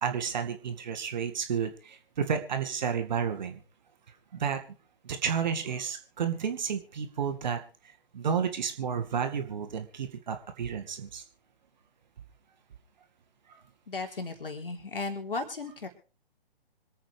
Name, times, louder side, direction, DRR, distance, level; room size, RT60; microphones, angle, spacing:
voice 1, 0.0-3.6 4.3-4.6 5.0-7.6 8.1-11.2, right 7 dB, 45° right, 6 dB, 2.2 m, -31 dB
voice 2, 13.9-15.9, left 3 dB, 65° left, 4 dB, 3.7 m, -35 dB
26.0 x 8.9 x 3.5 m, 0.36 s
figure-of-eight pair, 130°, 30 cm